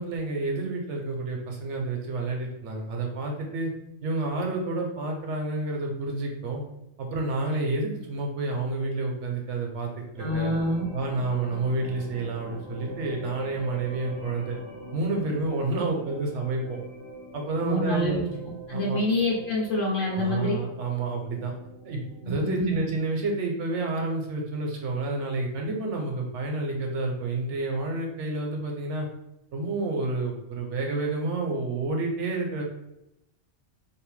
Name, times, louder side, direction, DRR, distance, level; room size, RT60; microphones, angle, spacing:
voice 1, 0.0-3.7 4.0-6.6 7.0-10.5 10.9-14.6 14.9-16.8 17.3-18.3 18.7-19.0 20.1-21.5 21.8-22.0 22.3-29.1 29.5-32.6, right 2 dB, 70° right, 1 dB, 0.9 m, -29 dB
voice 2, 10.2-10.8 17.6-18.2 18.7-20.6 22.2-22.8, left 1 dB, 55° left, -3 dB, 0.7 m, -26 dB
sound 1, 10.2-22.2, right 1 dB, 40° right, 0.5 m, -42 dB
2.6 x 2.0 x 3.1 m, 0.86 s
omnidirectional pair, 1.3 m